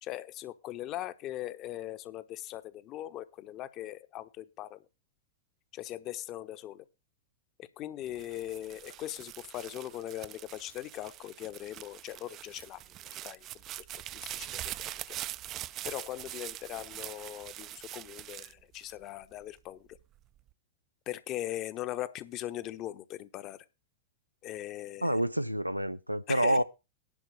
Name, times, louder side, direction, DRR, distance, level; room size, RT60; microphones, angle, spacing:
voice 1, 0.0-4.8 5.7-6.8 7.8-13.5 13.8-15.2 15.8-19.9 21.1-23.6 24.4-25.2 26.3-26.6, left 13 dB, 35° left, 0.9 m, -40 dB
sound 1, 8.1-19.4 20.0-20.5, right 13 dB, 35° right, 0.5 m, -43 dB
voice 2, 25.0-26.6, right 1 dB, 90° right, 0.6 m, -28 dB
11.0 x 4.6 x 8.0 m
figure-of-eight pair, 90°, 0 cm